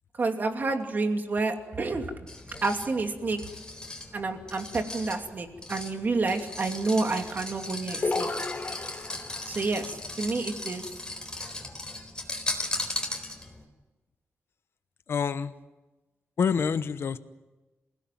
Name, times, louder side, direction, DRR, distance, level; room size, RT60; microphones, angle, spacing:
voice 1, 0.2-2.1 2.6-3.4 4.1-8.3 9.5-10.8, right 3 dB, 40° right, 4 dB, 2.7 m, -29 dB
sound 1, 2.3-13.6, left 2 dB, 15° left, 3.9 m, -37 dB
sound 2, 8.0-9.6, left 3 dB, 35° left, 3.1 m, -32 dB
voice 2, 15.1-15.5 16.4-17.2, left 6 dB, 55° left, 12 dB, 1.0 m, -26 dB
28.0 x 17.0 x 9.3 m, 1.1 s
wide cardioid pair, 145°, 5 cm